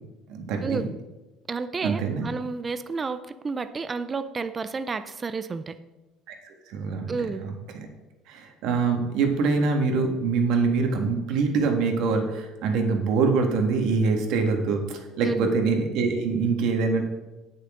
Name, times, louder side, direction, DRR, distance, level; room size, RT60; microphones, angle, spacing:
voice 1, 0.3-0.9 1.8-2.3 6.3-6.4 6.7-7.1 7.4-7.9 8.3-17.0, right 4 dB, 55° right, 3 dB, 1.8 m, -24 dB
voice 2, 1.5-5.7 7.1-7.4 15.2-15.5, right 4 dB, 15° right, 12 dB, 0.4 m, -31 dB
17.5 x 6.5 x 3.8 m, 1.1 s
cardioid pair, 175°, 0 cm